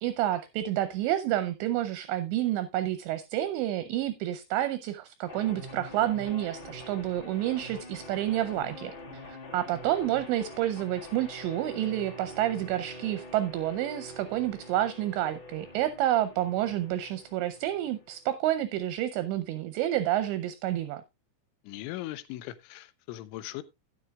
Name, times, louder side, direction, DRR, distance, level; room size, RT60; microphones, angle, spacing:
voice 1, 0.0-21.0, right 13 dB, 80° right, 2.6 m, -29 dB
sound 1, 5.3-18.3, left 1 dB, 30° left, 2.3 m, -45 dB
voice 2, 21.6-23.6, left 15 dB, 80° left, 2.9 m, -39 dB
12.5 x 10.5 x 2.3 m
omnidirectional pair, 5.8 m